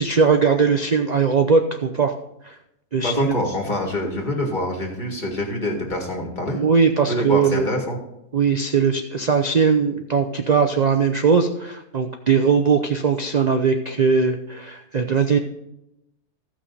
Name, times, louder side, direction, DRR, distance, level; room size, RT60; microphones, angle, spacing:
voice 1, 0.0-2.1 2.4-2.6 2.9-3.4 6.5-7.7 8.3-15.4, right 5 dB, 85° right, 5 dB, 0.3 m, -19 dB
voice 2, 3.0-6.6 7.1-8.0, left 1 dB, 30° left, 1 dB, 2.1 m, -25 dB
15.5 x 6.0 x 4.1 m, 0.84 s
omnidirectional pair, 1.6 m